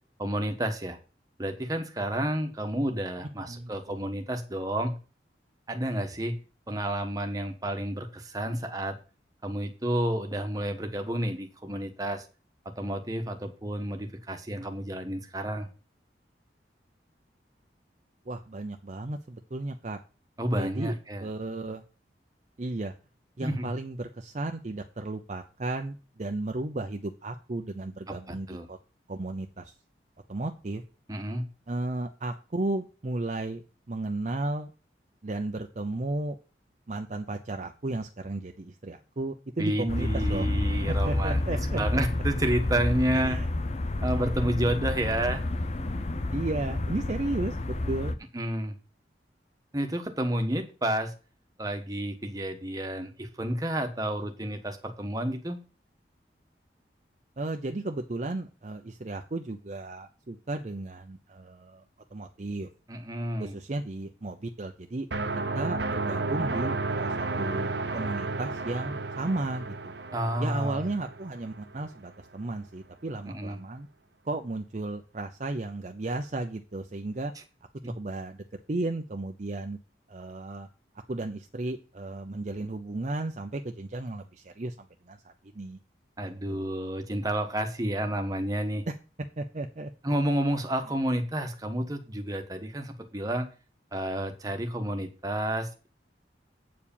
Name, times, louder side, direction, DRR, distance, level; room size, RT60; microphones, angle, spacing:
voice 1, 0.2-1.0 1.4-4.9 5.7-6.4 6.7-8.9 9.4-12.2 12.8-15.7 20.4-21.3 23.4-23.7 28.3-28.7 31.1-31.4 39.6-41.4 41.7-43.4 44.0-45.4 48.3-48.7 49.7-51.1 51.6-55.6 62.9-63.5 70.1-70.9 73.3-73.6 77.8-77.9 86.2-88.8 90.0-93.5 93.9-95.9, right 1 dB, 20° right, 5 dB, 1.2 m, -30 dB
voice 2, 3.5-4.1 18.3-20.0 20.6-20.9 21.2-21.8 22.6-22.9 23.4-28.8 29.1-29.7 30.3-30.8 31.7-34.7 35.2-36.4 36.9-40.5 40.9-41.8 43.2-43.5 46.3-48.1 57.4-61.8 62.1-62.7 63.4-65.1 65.5-69.9 70.4-73.9 74.2-77.3 77.8-79.8 80.1-80.7 81.1-85.8 86.5-86.8 88.9-89.0 89.4-89.9, right 2 dB, 40° right, 5 dB, 0.6 m, -34 dB
sound 1, 39.9-48.1, left 2 dB, 40° left, 0.7 m, -29 dB
sound 2, 65.1-71.8, right 3 dB, 70° right, 0.8 m, -32 dB
8.4 x 4.8 x 7.1 m, 0.34 s
head